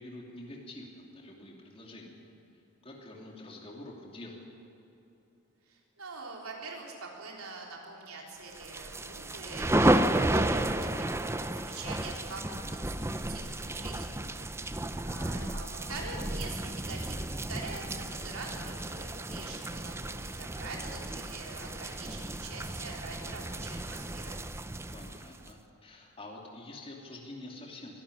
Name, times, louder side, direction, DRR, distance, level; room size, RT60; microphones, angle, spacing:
voice 1, 0.0-2.2 2.8-4.5 13.6-13.8 24.9-28.0, left 1 dB, 25° left, -1 dB, 2.9 m, -47 dB
voice 2, 5.7-12.4 12.7-24.4, right 3 dB, 80° right, -1 dB, 3.7 m, -44 dB
sound 1, 8.6-25.5, right 1 dB, 10° right, 0.6 m, -32 dB
24.0 x 12.0 x 10.0 m, 3.0 s
head